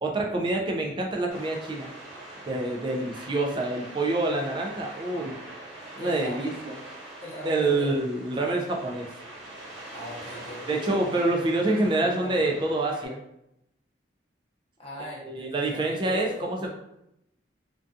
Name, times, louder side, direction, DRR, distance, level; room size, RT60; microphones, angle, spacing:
voice 1, 0.0-1.9 2.5-5.4 6.0-6.7 7.4-9.1 10.7-13.2 15.2-16.7, right 2 dB, 25° right, 1 dB, 0.3 m, -27 dB
sound 1, 1.3-13.1, right 1 dB, 75° right, 0.9 m, -43 dB
voice 2, 6.0-6.6 7.2-8.0 9.9-12.4 14.8-16.7, left 1 dB, 30° left, -4 dB, 0.6 m, -40 dB
2.6 x 2.2 x 2.4 m, 0.84 s
head